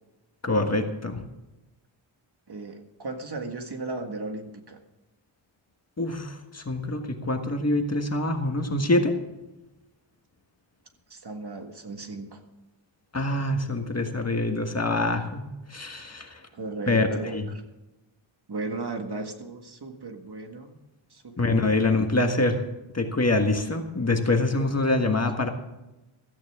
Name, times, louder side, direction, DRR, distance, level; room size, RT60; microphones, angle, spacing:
voice 1, 0.4-1.2 6.0-9.2 13.1-16.4 16.9-17.5 21.4-22.6 22.9-25.5, left 2 dB, 30° left, 4 dB, 1.6 m, -25 dB
voice 2, 2.5-4.8 11.1-12.4 16.5-17.6 18.5-20.8 21.1-21.9 24.4-24.5, right 3 dB, 50° right, 5 dB, 1.8 m, -36 dB
16.0 x 14.0 x 3.7 m, 1.0 s
wide cardioid pair, 125°, 49 cm